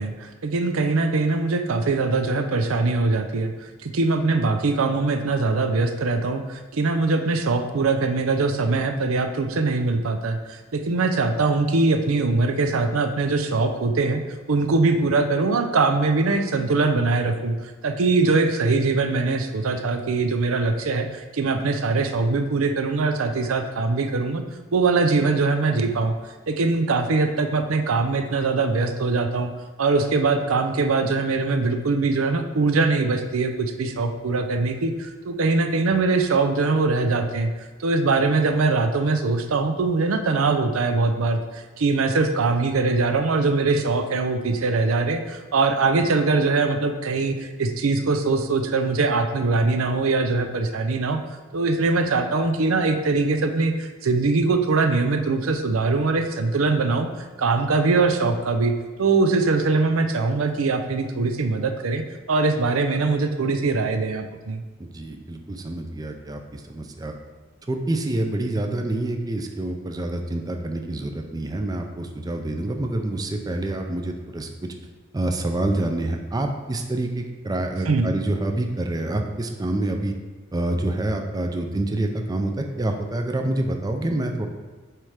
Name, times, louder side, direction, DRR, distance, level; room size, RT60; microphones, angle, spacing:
voice 1, 0.0-14.2 14.5-17.6 17.8-24.4 24.7-26.1 26.5-29.5 29.8-37.5 37.8-51.2 51.5-58.7 59.0-64.6 77.9-78.2, right 3 dB, 90° right, 7 dB, 0.6 m, -22 dB
voice 2, 64.8-67.1 67.7-74.5 75.1-80.1 80.5-84.5, right 1 dB, 20° right, 4 dB, 0.4 m, -27 dB
7.5 x 3.3 x 4.9 m, 1.3 s
head